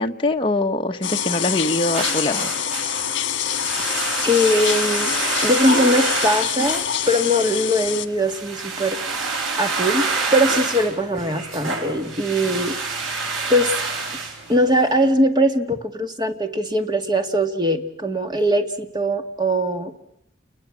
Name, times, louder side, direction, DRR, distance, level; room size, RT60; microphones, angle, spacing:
voice 1, 0.0-2.5, left 2 dB, 25° left, 3 dB, 1.4 m, -23 dB
sound 1, 1.0-8.1, left 9 dB, 70° left, 1.7 m, -25 dB
sound 2, 1.9-15.0, right 4 dB, 85° right, 6.5 m, -28 dB
voice 2, 4.2-5.1 5.4-9.0 9.6-10.1 10.3-12.8 13.5-13.8 14.5-19.9, equal, 20° right, 6 dB, 2.1 m, -21 dB
29.5 x 21.5 x 7.6 m, 0.78 s
head